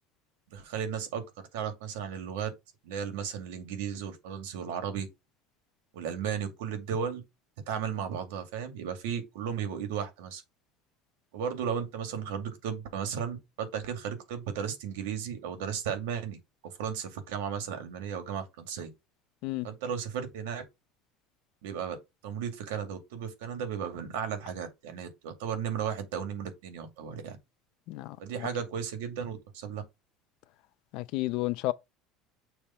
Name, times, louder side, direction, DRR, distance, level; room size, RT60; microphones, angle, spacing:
voice 1, 0.5-1.2 1.5-2.5 2.8-5.1 5.9-7.2 7.7-10.4 11.3-16.4 16.6-18.9 19.6-20.6 21.6-22.0 22.2-27.4 28.2-29.8, right 7 dB, 90° right, 2.4 m, -35 dB
voice 2, 27.9-28.5 30.9-31.7, left 19 dB, 65° left, 0.7 m, -32 dB
7.0 x 3.1 x 5.7 m
supercardioid pair, 125°, 0 cm